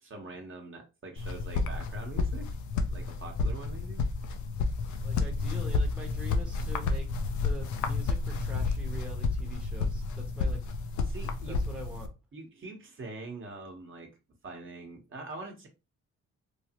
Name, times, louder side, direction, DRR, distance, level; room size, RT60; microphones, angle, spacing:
voice 1, 0.0-2.5 2.9-4.0 11.0-11.6 12.3-14.1 14.4-15.7, right 3 dB, 40° right, 2 dB, 0.9 m, -43 dB
sound 1, 1.2-12.1, left 4 dB, 75° left, 0.5 m, -31 dB
voice 2, 5.0-7.1 7.4-10.6 11.5-12.1, right 1 dB, 5° right, -1 dB, 0.8 m, -44 dB
3.2 x 2.0 x 2.8 m, 0.28 s
cardioid pair, 90°, 30 cm